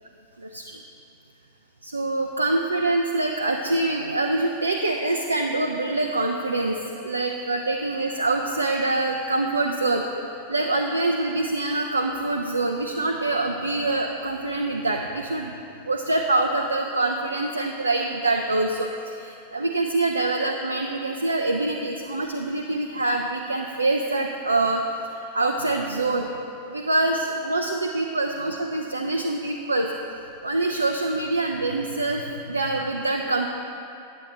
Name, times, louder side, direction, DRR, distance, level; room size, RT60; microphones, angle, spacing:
voice 1, 0.4-0.8 1.8-10.0 10.5-15.5 15.8-24.8 25.1-26.3 26.7-29.9 30.4-33.5, right 2 dB, 80° right, 2 dB, 0.3 m, -25 dB
9.3 x 7.9 x 2.9 m, 2.7 s
figure-of-eight pair, 90°, 0 cm